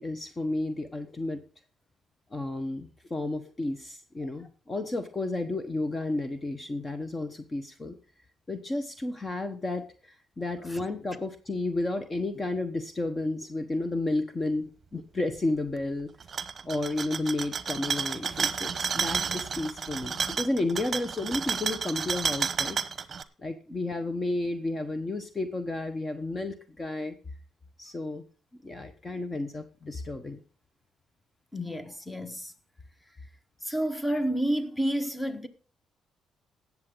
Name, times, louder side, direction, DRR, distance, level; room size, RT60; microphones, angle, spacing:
voice 1, 0.0-1.4 2.3-8.0 8.5-22.8 23.4-27.2 27.8-28.2 28.6-30.4, left 2 dB, 25° left, 1.1 m, -32 dB
sound 1, 16.2-23.2, right 6 dB, 40° right, 0.9 m, -31 dB
voice 2, 31.5-32.5 33.6-35.5, right 1 dB, 10° left, 1.3 m, -30 dB
17.5 x 7.3 x 3.9 m
cardioid pair, 90°, 0 cm